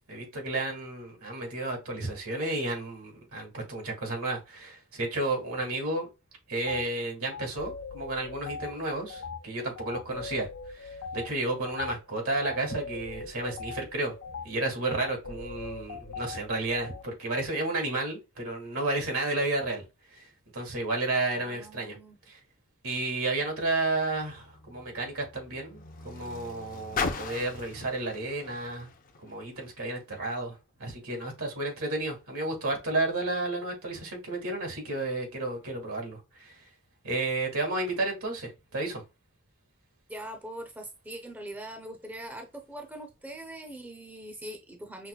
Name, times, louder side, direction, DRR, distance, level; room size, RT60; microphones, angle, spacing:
voice 1, 0.1-6.1 6.5-10.5 10.7-14.1 14.4-19.8 20.1-20.3 20.5-22.0 22.3-22.4 22.8-28.9 29.2-36.6 37.0-39.0, right 2 dB, 80° right, 1.9 m, -32 dB
sound 1, 6.7-6.9 7.3-17.0, left 5 dB, 90° left, 0.6 m, -41 dB
voice 2, 21.3-22.2 40.1-45.1, right 1 dB, 10° right, 0.5 m, -42 dB
Car, 23.7-29.9 30.8-30.9, left 4 dB, 40° left, 0.5 m, -39 dB
5.6 x 2.1 x 2.2 m
head